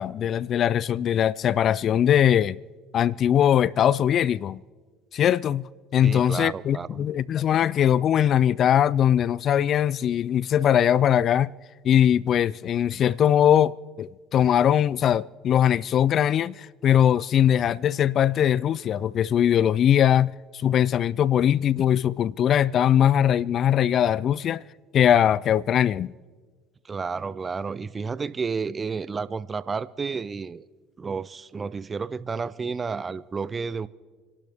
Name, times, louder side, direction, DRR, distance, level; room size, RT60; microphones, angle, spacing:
voice 1, 0.0-2.6 2.9-4.6 5.1-11.5 11.8-24.6 24.9-26.1, left 10 dB, 50° left, 0.3 m, -21 dB
voice 2, 6.0-7.1 26.8-30.7 31.0-33.9, right 5 dB, 30° right, 0.6 m, -31 dB
28.5 x 12.0 x 3.5 m
hypercardioid pair, 75°, 0 cm